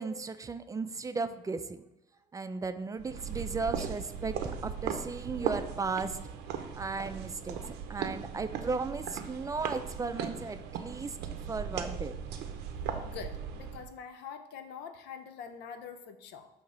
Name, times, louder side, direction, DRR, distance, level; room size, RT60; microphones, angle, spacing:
voice 1, 0.0-1.8 2.3-6.2 6.7-7.6 7.9-11.2 11.5-12.2, right 4 dB, 20° right, 10 dB, 0.3 m, -35 dB
sound 1, 3.0-13.9, right 7 dB, 85° right, 0.7 m, -38 dB
voice 2, 13.0-16.5, left 7 dB, 90° left, 9 dB, 0.6 m, -45 dB
6.5 x 2.8 x 5.4 m, 0.93 s
cardioid pair, 110°, 17 cm